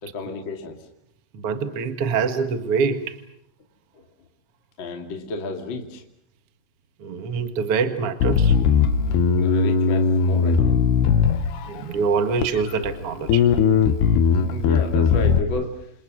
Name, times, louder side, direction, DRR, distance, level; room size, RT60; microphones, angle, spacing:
voice 1, 0.0-0.8 4.8-6.0 9.4-10.8 14.5-15.8, left 2 dB, 35° left, 3 dB, 2.8 m, -31 dB
voice 2, 1.3-3.2 7.0-8.6 11.6-13.5, right 5 dB, 50° right, 8 dB, 2.0 m, -25 dB
Bass guitar, 8.2-11.8 12.4-13.0 13.3-15.4, left 6 dB, 85° left, 3.5 m, -19 dB
29.0 x 28.0 x 6.2 m, 0.73 s
omnidirectional pair, 4.7 m